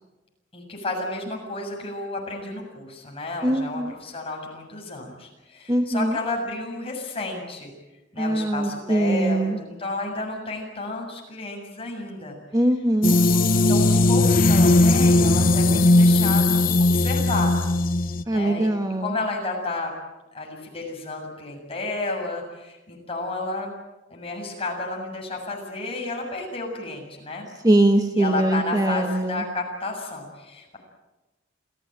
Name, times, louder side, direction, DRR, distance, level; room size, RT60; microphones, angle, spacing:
voice 1, 0.5-7.7 8.1-12.4 13.5-17.5 18.2-18.7 19.0-19.9 20.3-23.7 24.1-27.5 28.1-30.8, left 2 dB, 30° left, 0 dB, 7.2 m, -31 dB
voice 2, 3.4-3.9 5.7-6.2 8.2-9.6 12.5-13.1 18.3-19.2 27.6-29.4, right 1 dB, 20° right, 5 dB, 1.4 m, -22 dB
sound 1, 13.0-18.2, left 2 dB, 45° left, 1.0 m, -18 dB
28.0 x 16.0 x 9.1 m, 1.1 s
head